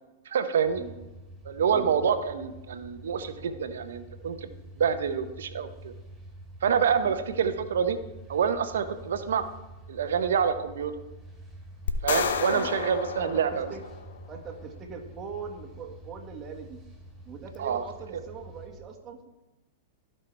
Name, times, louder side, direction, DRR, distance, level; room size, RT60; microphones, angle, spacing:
voice 1, 0.3-0.8 1.4-4.5 4.8-5.9 6.6-8.0 8.3-9.4 9.9-10.9 12.0-13.7 17.6-17.8, right 7 dB, 80° right, 10 dB, 0.9 m, -27 dB
sound 1, 0.6-18.7, right 1 dB, 5° right, 2.8 m, -47 dB
sound 2, 11.9-14.3, left 6 dB, 80° left, 0.8 m, -31 dB
voice 2, 13.2-13.8 14.3-16.8 17.2-19.2, right 6 dB, 30° right, 2 dB, 1.7 m, -41 dB
14.5 x 5.7 x 3.3 m, 1.1 s
hypercardioid pair, 115°, 0 cm